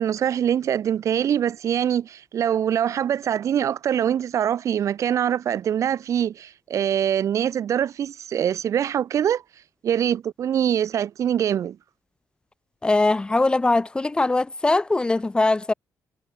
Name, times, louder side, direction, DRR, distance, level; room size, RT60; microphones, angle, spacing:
voice 1, 0.0-9.4 9.8-11.8, right 9 dB, 60° right, 5.0 m, -23 dB
voice 2, 12.8-15.7, left 2 dB, 15° left, 2.0 m, -21 dB
cardioid pair, 140°, 6 cm